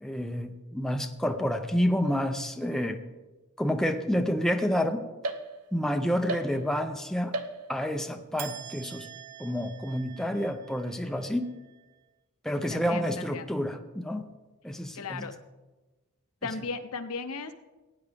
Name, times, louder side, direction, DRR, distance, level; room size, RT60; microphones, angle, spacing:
voice 1, 0.0-3.0 3.6-5.1 5.7-7.3 7.7-9.1 9.4-11.5 12.4-14.3 14.6-15.2, equal, ahead, 5 dB, 0.5 m, -29 dB
sound 1, 5.2-5.9 6.3-6.9 7.3-8.0 8.4-11.8, right 3 dB, 85° right, 0.9 m, -40 dB
voice 2, 12.7-13.5 14.9-15.3 16.4-17.5, left 4 dB, 75° left, 8 dB, 0.8 m, -36 dB
18.0 x 9.4 x 3.5 m, 1.2 s
head